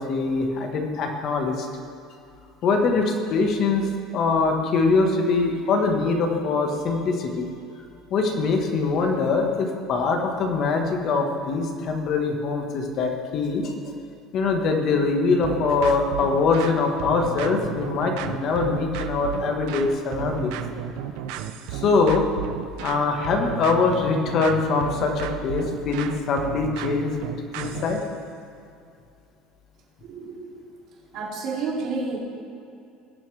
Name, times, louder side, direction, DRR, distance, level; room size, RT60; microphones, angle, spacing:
voice 1, 0.0-1.7 2.6-7.5 8.1-13.9 14.3-20.5 21.7-22.2 22.8-27.1 27.6-28.0, left 4 dB, 45° left, 3 dB, 1.4 m, -23 dB
sound 1, 15.4-28.1, right 9 dB, 75° right, 0.6 m, -33 dB
voice 2, 30.0-30.6 31.1-32.2, right 4 dB, 55° right, -4 dB, 2.6 m, -30 dB
19.5 x 7.2 x 3.4 m, 2.5 s
cardioid pair, 150°, 0 cm